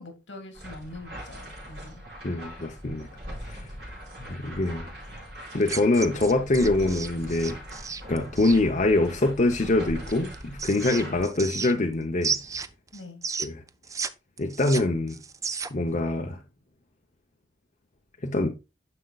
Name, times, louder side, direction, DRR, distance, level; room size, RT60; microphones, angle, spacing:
voice 1, 0.0-2.0 6.8-6.9 12.9-13.2, left 2 dB, 80° left, 2.2 m, -43 dB
sound 1, 0.5-11.2, equal, 55° right, 4.6 m, -41 dB
voice 2, 2.2-3.1 3.4-3.7 4.2-4.9 5.5-7.6 8.1-12.4 13.4-13.6 14.4-15.2 15.7-16.4 18.2-18.5, left 2 dB, 40° left, 0.8 m, -24 dB
sound 2, 5.6-8.6 10.1-11.9 12.2-14.1 14.4-15.9, right 5 dB, 15° right, 0.4 m, -33 dB
9.9 x 6.5 x 2.4 m
head